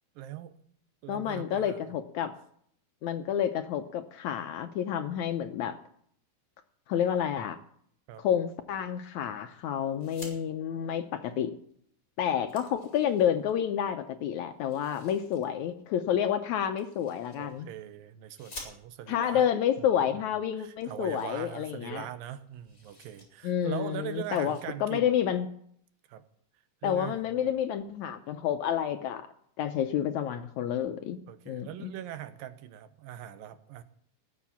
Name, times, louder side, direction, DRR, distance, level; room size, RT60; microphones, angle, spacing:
voice 1, 0.2-0.5 1.0-1.9 8.1-8.2 17.4-19.5 19.8-20.2 20.6-25.1 26.1-26.2 26.8-27.3 31.3-33.8, right 12 dB, 85° right, 12 dB, 2.6 m, -41 dB
voice 2, 1.1-2.3 3.0-5.8 6.9-7.6 8.2-11.5 12.2-17.7 19.1-22.0 23.4-25.5 26.8-29.3 29.6-31.2 31.5-31.9, left 9 dB, 75° left, 7 dB, 1.8 m, -29 dB
sound 1, 9.9-10.4 11.7-11.8 12.1-13.5 14.6-15.5 16.8-17.7 18.3-19.2 20.1-20.2 20.4-20.5 20.8-22.1 22.4-23.3 23.6-23.8 24.2-24.6, left 2 dB, 25° left, 4.1 m, -50 dB
19.0 x 7.6 x 7.2 m, 0.66 s
omnidirectional pair, 4.0 m